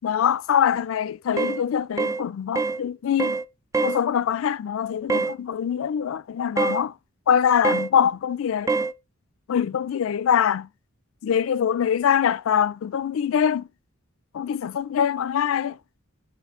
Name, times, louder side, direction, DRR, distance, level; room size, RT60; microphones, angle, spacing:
voice 1, 0.0-3.4 3.8-7.0 7.3-8.7 9.5-10.7 11.2-13.7 14.3-15.8, left 8 dB, 75° left, 0.3 m, -23 dB
sound 1, 1.4-1.6 2.0-2.2 2.6-2.8 3.2-3.4 3.7-4.0 5.1-5.3 6.6-6.8 7.6-7.9 8.7-8.9, right 4 dB, 15° right, 0.3 m, -24 dB
6.5 x 5.0 x 3.6 m
head